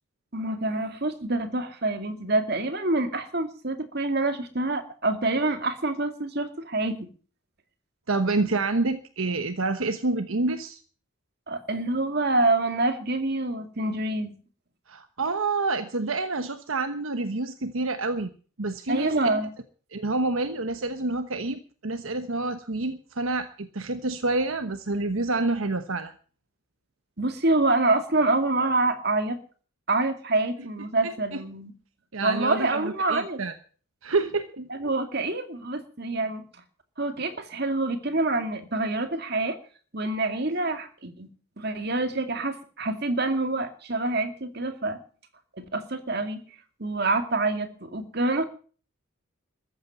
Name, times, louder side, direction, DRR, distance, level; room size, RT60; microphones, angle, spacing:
voice 1, 0.3-7.1 11.5-14.3 18.9-19.5 27.2-29.4 29.9-31.7 32.2-33.4 34.7-36.4 37.0-39.6 39.9-41.3 41.6-45.0 45.6-46.4 46.8-48.4, right 2 dB, 50° right, 7 dB, 2.3 m, -26 dB
voice 2, 8.1-10.8 14.9-18.3 18.6-19.1 19.9-26.1 31.0-31.4 32.1-33.5 34.0-34.7, right 3 dB, 75° right, 8 dB, 1.1 m, -28 dB
14.5 x 8.8 x 9.1 m, 0.41 s
head